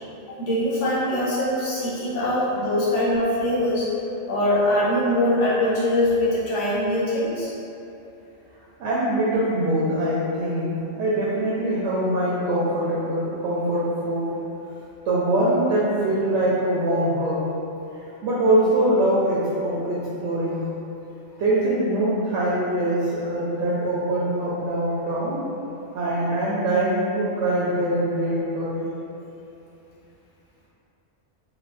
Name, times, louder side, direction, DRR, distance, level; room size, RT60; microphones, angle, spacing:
voice 1, 0.4-3.9 4.3-7.5, left 1 dB, 75° left, -8 dB, 1.1 m, -22 dB
voice 2, 8.8-14.3 15.1-17.4 18.2-20.7 21.4-25.4 25.9-28.8, right 1 dB, 75° right, -7 dB, 0.8 m, -23 dB
2.9 x 2.2 x 3.0 m, 2.9 s
omnidirectional pair, 1.2 m